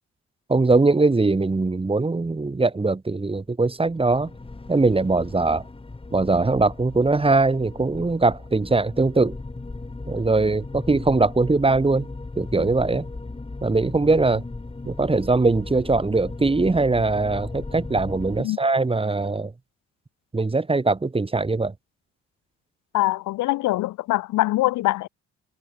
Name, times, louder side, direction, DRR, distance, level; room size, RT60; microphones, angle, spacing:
voice 1, 0.5-4.3 4.7-5.6 6.1-9.4 10.1-12.1 12.4-13.0 13.6-14.4 14.8-19.5 20.3-21.7, right 3 dB, 20° right, 1.7 m, -21 dB
sound 1, 3.8-18.4, left 3 dB, 20° left, 3.0 m, -37 dB
voice 2, 22.9-25.1, left 17 dB, 75° left, 0.6 m, -23 dB
cardioid pair, 90°, 30 cm